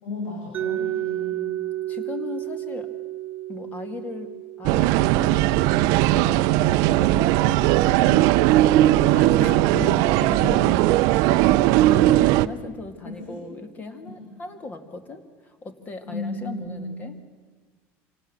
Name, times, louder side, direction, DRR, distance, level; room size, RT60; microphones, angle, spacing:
voice 1, 0.0-1.6 10.2-10.8 11.2-12.4 13.0-13.5 14.1-14.4 16.1-17.0, left 1 dB, 85° left, -1 dB, 6.0 m, -35 dB
Mallet percussion, 0.5-6.4, right 13 dB, 25° right, 1.5 m, -32 dB
voice 2, 1.9-2.9 3.5-4.3 4.6-8.4 9.1-10.6 11.1-11.4 12.1-17.2, left 3 dB, 25° left, 9 dB, 2.2 m, -37 dB
sound 1, 4.6-12.5, right 15 dB, 65° right, 0.6 m, -18 dB
26.5 x 18.0 x 7.8 m, 1.4 s
cardioid pair, 145°, 7 cm